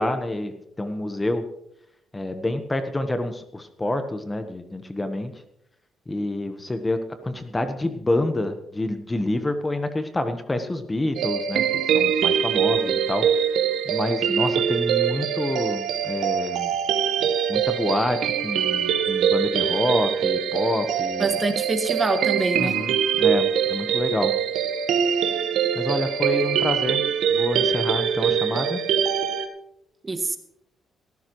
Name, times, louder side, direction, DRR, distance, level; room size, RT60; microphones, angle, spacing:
voice 1, 0.0-1.4 2.1-5.3 6.1-13.4 13.8-16.7 17.5-21.4 22.6-24.3 25.7-27.0 27.3-28.8, left 1 dB, 15° left, 8 dB, 1.2 m, -27 dB
sound 1, 11.2-29.5, right 8 dB, 80° right, 1.2 m, -23 dB
voice 2, 21.2-22.8 30.0-30.4, right 3 dB, 25° right, 7 dB, 1.7 m, -25 dB
17.5 x 14.5 x 3.1 m, 0.77 s
cardioid pair, 90°, 0 cm